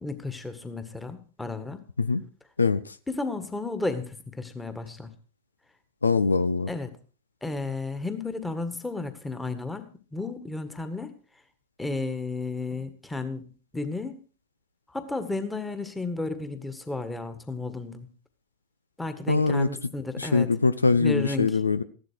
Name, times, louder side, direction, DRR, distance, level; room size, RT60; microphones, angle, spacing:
voice 1, 0.0-1.8 3.1-5.1 6.7-6.9 7.4-11.1 11.8-14.2 14.9-18.1 19.0-20.5 20.9-21.6, left 3 dB, 5° left, 9 dB, 1.8 m, -33 dB
voice 2, 2.6-3.0 6.0-6.7 19.3-19.7 20.2-21.8, left 4 dB, 80° left, 15 dB, 0.6 m, -23 dB
15.5 x 11.5 x 4.7 m, 0.38 s
figure-of-eight pair, 90°, 0 cm